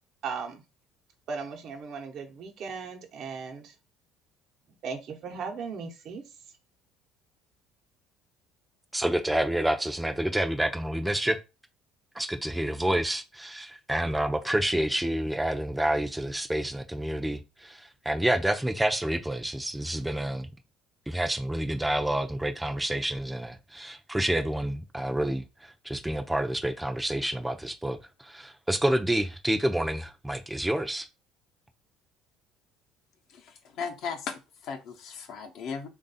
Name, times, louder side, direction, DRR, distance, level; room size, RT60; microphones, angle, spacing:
voice 1, 0.2-0.6 1.3-3.7 4.8-6.2, right 5 dB, 60° right, 0.9 m, -37 dB
voice 2, 8.9-11.4 12.2-17.7 18.1-20.5 21.1-25.4 25.9-28.0 28.3-31.0, right 1 dB, 5° right, 0.5 m, -28 dB
voice 3, 33.3-35.9, left 6 dB, 65° left, 0.8 m, -37 dB
3.3 x 2.5 x 4.0 m
supercardioid pair, 85°, 0 cm